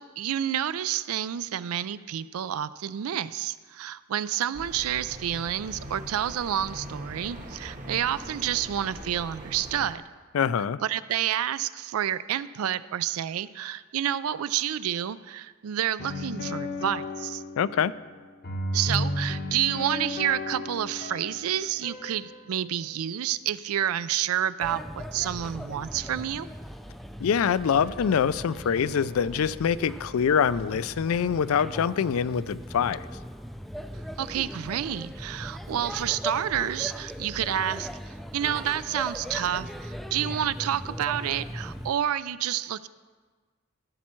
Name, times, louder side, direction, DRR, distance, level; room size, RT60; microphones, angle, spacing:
voice 1, 0.0-10.0 10.8-17.4 18.7-26.5 34.2-42.9, right 10 dB, 85° right, 16 dB, 0.4 m, -29 dB
sound 1, 4.5-9.9, right 1 dB, 35° right, 1.0 m, -41 dB
voice 2, 10.3-10.8 17.6-17.9 27.2-33.1, left 7 dB, 75° left, 17 dB, 0.4 m, -25 dB
melanchonic piano, 16.0-18.2 18.4-22.8 27.8-29.9, left 1 dB, 45° left, 0.8 m, -35 dB
Male speech man speaking / Child speech kid speaking / Chatter, 24.6-41.9, equal, ahead, 0.3 m, -39 dB
15.0 x 7.2 x 4.4 m, 1.4 s
head